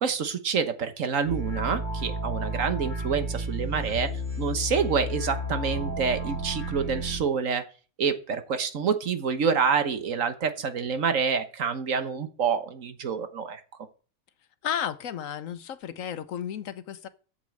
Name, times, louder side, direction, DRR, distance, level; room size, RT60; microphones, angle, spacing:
voice 1, 0.0-4.1 4.4-7.6 8.0-13.6, right 6 dB, 70° right, 1.5 m, -27 dB
sound 1, 1.2-7.2, equal, 90° right, 4.4 m, -32 dB
voice 2, 14.6-17.1, left 9 dB, 70° left, 1.2 m, -33 dB
8.4 x 7.3 x 7.7 m
omnidirectional pair, 1.4 m